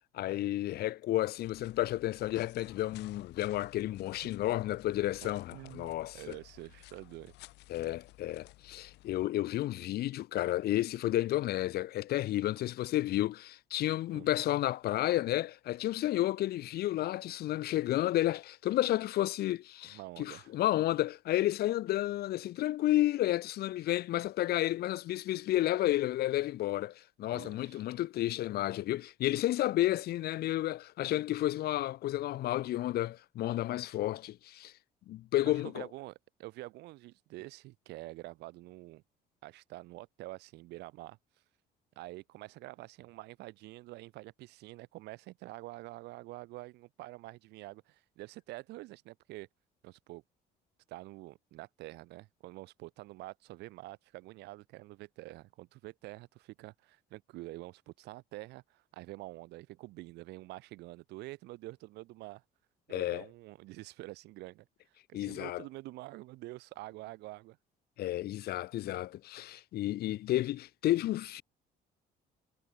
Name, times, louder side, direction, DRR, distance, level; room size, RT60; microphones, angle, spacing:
voice 1, 0.1-6.4 7.7-34.7 35.1-35.9 62.9-63.2 65.1-65.6 68.0-71.4, left 14 dB, 70° left, 1.0 m, -31 dB
sound 1, 1.4-9.3, left 19 dB, 85° left, 2.8 m, -54 dB
voice 2, 5.2-7.3 14.1-14.3 19.8-20.5 27.3-27.8 35.4-39.0 39.4-41.2 42.0-49.5 49.8-50.2 50.9-62.4 62.9-64.7 65.1-67.6, right 19 dB, 85° right, 1.8 m, -47 dB
cardioid pair, 110°, 17 cm